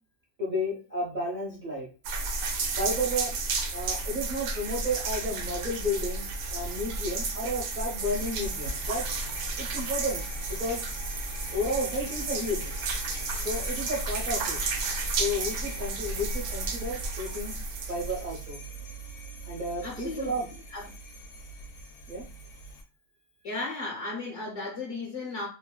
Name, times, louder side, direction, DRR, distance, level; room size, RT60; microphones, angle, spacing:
voice 1, 0.4-1.9 2.8-3.3 3.7-9.0 9.6-10.2 10.5-10.8 11.5-12.7 13.4-14.6 15.2-17.5 17.9-18.6 19.4-20.4 22.1-22.2, equal, 40° right, 0.9 m, -32 dB
sound 1, 2.0-18.5, right 3 dB, 80° right, 1.1 m, -32 dB
sound 2, 8.0-22.8, right 2 dB, 90° left, 1.1 m, -42 dB
voice 2, 19.8-20.3 20.7-20.9 23.4-25.5, left 3 dB, 60° left, 1.0 m, -35 dB
3.0 x 2.5 x 2.2 m
omnidirectional pair, 1.6 m